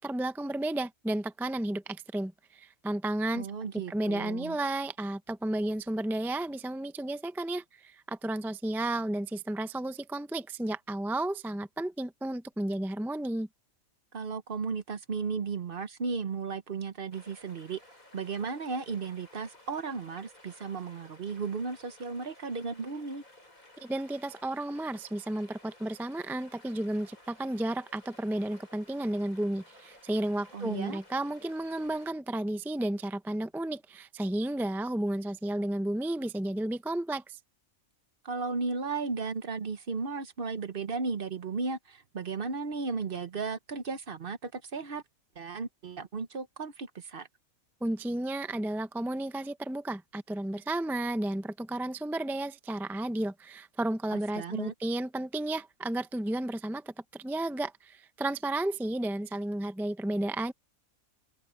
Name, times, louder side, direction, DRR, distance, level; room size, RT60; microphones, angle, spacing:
voice 1, 0.0-3.5 3.9-13.5 23.8-37.4 47.8-60.5, right 1 dB, 5° right, 0.3 m, -32 dB
voice 2, 3.3-4.6 14.1-17.8 18.1-23.2 30.5-31.0 38.2-45.0 45.4-47.3 54.1-54.7, right 4 dB, 45° right, 1.0 m, -35 dB
sound 1, 17.1-32.1, left 1 dB, 70° left, 8.5 m, -56 dB
omnidirectional pair, 1.5 m